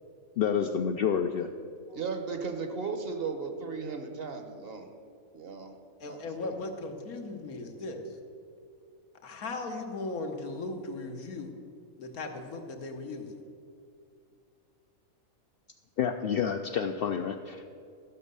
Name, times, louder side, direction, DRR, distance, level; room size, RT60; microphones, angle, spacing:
voice 1, 0.4-1.5 16.0-17.6, left 7 dB, 70° left, 5 dB, 0.5 m, -29 dB
voice 2, 1.9-4.9 5.3-5.8 6.0-6.5, right 4 dB, 50° right, 6 dB, 1.0 m, -36 dB
voice 3, 6.0-8.2 9.2-11.5 12.0-13.4, left 3 dB, 85° left, 4 dB, 1.6 m, -37 dB
13.5 x 6.4 x 6.8 m, 2.4 s
omnidirectional pair, 1.5 m